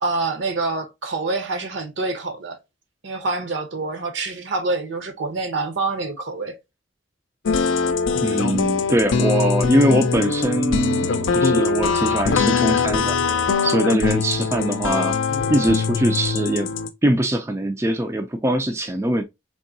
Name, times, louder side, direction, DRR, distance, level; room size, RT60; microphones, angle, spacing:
voice 1, 0.0-2.6 3.0-6.6, right 3 dB, 65° right, 0.8 m, -26 dB
sound 1, 7.5-16.9, left 5 dB, 80° left, 0.5 m, -22 dB
voice 2, 8.2-13.3 13.6-15.2 15.5-16.7 17.0-19.2, right 1 dB, 15° right, 0.3 m, -22 dB
3.6 x 3.0 x 2.6 m
head